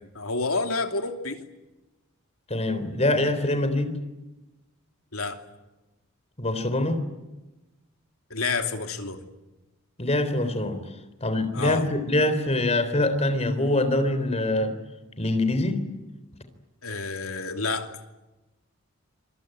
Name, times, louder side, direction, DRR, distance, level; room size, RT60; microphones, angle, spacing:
voice 1, 0.1-1.4 5.1-5.4 8.3-9.3 11.5-11.8 16.8-17.9, left 3 dB, 80° left, 5 dB, 2.9 m, -29 dB
voice 2, 2.5-3.9 6.4-7.0 10.0-10.9 11.2-14.8 15.2-15.8, left 1 dB, 30° left, 10 dB, 3.8 m, -24 dB
27.0 x 22.5 x 9.3 m, 1.0 s
head